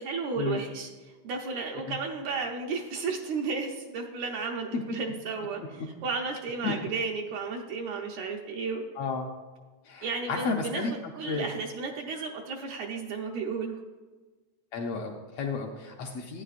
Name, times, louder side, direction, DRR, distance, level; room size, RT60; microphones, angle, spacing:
voice 1, 0.0-8.8 10.0-10.8 11.1-13.8, right 4 dB, 75° right, 0 dB, 2.1 m, -33 dB
voice 2, 9.0-9.3 9.8-10.9 11.3-11.5 14.7-16.4, left 4 dB, 75° left, 1 dB, 1.5 m, -32 dB
12.5 x 9.5 x 2.5 m, 1.3 s
omnidirectional pair, 3.3 m